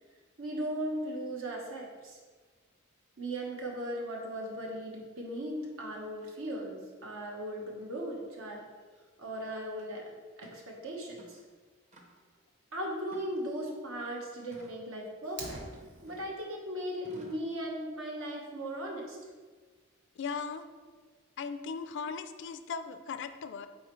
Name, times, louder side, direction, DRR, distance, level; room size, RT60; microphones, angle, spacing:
voice 1, 0.4-2.2 3.2-8.7 9.2-10.0 10.4-11.4 12.7-15.6 16.0-19.2, right 1 dB, 80° right, -1 dB, 1.3 m, -37 dB
sound 1, 9.8-9.9 10.4-10.6 11.1-11.5 11.9-12.4 13.1-13.7 14.5-14.8 15.5-16.4 17.0-17.5, equal, 35° right, 0.9 m, -56 dB
Fire, 15.2-16.2, right 2 dB, 60° right, 1.0 m, -44 dB
voice 2, 20.2-20.7 21.4-23.7, left 5 dB, 60° left, 10 dB, 0.4 m, -38 dB
8.6 x 4.0 x 3.1 m, 1.5 s
head